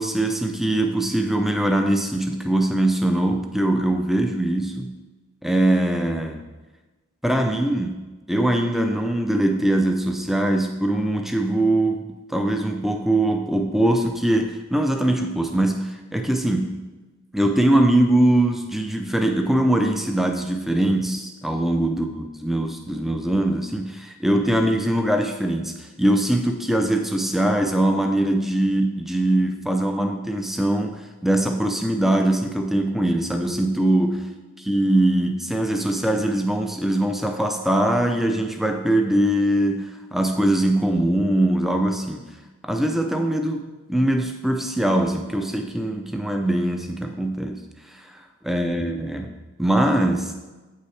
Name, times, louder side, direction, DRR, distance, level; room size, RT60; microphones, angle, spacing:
voice 1, 0.0-5.0 5.4-6.4 7.2-16.8 17.3-34.3 34.6-42.2 42.6-47.6 48.4-49.3 49.6-50.3, right 1 dB, ahead, 5 dB, 0.4 m, -22 dB
8.7 x 5.6 x 3.3 m, 1.2 s
head